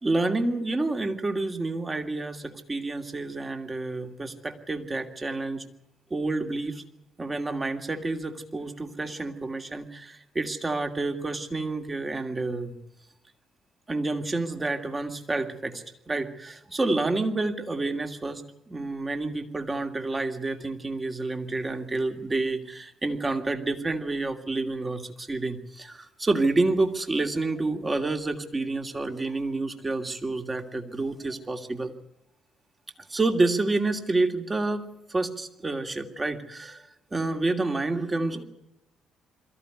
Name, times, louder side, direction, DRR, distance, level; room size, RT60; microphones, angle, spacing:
voice 1, 0.0-5.6 6.1-6.8 7.2-12.8 13.9-18.4 18.7-31.9 33.1-36.8 37.1-38.4, right 2 dB, 25° right, 5 dB, 2.7 m, -29 dB
22.5 x 14.5 x 9.5 m, 0.88 s
hypercardioid pair, 45°, 0 cm